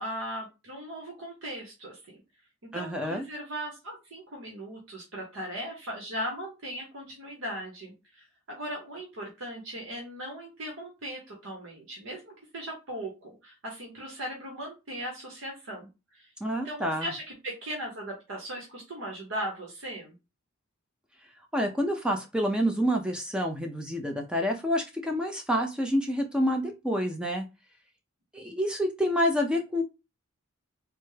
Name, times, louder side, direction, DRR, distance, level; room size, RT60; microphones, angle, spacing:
voice 1, 0.0-2.2 2.7-16.3 16.6-20.1, right 1 dB, 70° right, -1 dB, 0.9 m, -38 dB
voice 2, 2.7-3.2 16.4-17.1 21.5-27.4 28.3-29.8, equal, 5° right, 3 dB, 0.4 m, -28 dB
3.3 x 2.0 x 3.1 m, 0.26 s
head